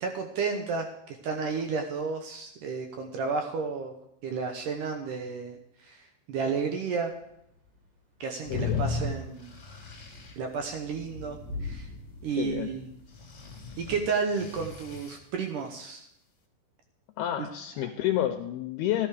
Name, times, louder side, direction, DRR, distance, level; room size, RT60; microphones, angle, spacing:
voice 1, 0.0-3.9 4.2-7.1 8.2-9.5 10.4-11.9 12.2-12.9 13.8-16.1 17.4-17.5 17.8-17.9, right 5 dB, 75° right, 4 dB, 2.0 m, -32 dB
Thunder / Rain, 7.1-15.3, left 3 dB, 45° right, 5.8 m, -46 dB
sound 1, 8.4-10.3 13.1-15.2, left 4 dB, 30° left, 1.4 m, -35 dB
voice 2, 8.5-8.8 12.4-12.7 17.2-19.1, left 12 dB, 80° left, 6 dB, 2.5 m, -29 dB
15.5 x 11.5 x 5.0 m, 0.79 s
omnidirectional pair, 5.0 m